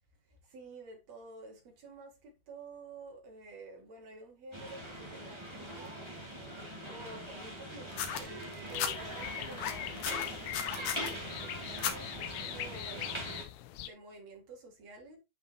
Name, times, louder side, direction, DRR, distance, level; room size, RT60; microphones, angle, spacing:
voice 1, 0.3-6.0 6.9-13.2 13.8-15.2, right 2 dB, 45° right, 2.9 m, -50 dB
sound 1, 4.5-13.4, right 1 dB, 10° right, 1.7 m, -42 dB
sound 2, 7.9-8.9 9.5-11.1 11.8-12.0 12.9-13.0, left 9 dB, 70° left, 2.1 m, -35 dB
sound 3, 8.7-13.9, left 14 dB, 85° left, 2.5 m, -42 dB
10.0 x 5.7 x 3.0 m
omnidirectional pair, 4.9 m